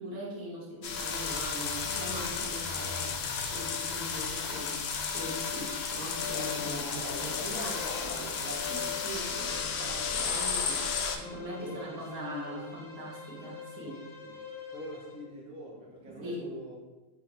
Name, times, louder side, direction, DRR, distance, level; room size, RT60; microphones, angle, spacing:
voice 1, 0.0-3.2 3.5-14.0 16.2-16.5, equal, 75° right, -5 dB, 1.7 m, -41 dB
sound 1, 0.8-11.2, left 6 dB, 90° left, 0.5 m, -33 dB
sound 2, 0.8-5.5 6.3-9.9, left 2 dB, 65° left, 0.8 m, -46 dB
Bowed string instrument, 7.6-15.2, left 4 dB, 55° right, 1.7 m, -47 dB
voice 2, 11.6-12.6 14.2-14.4 14.7-16.8, equal, 5° right, -4 dB, 0.4 m, -43 dB
4.9 x 2.0 x 4.3 m, 1.2 s
omnidirectional pair, 1.6 m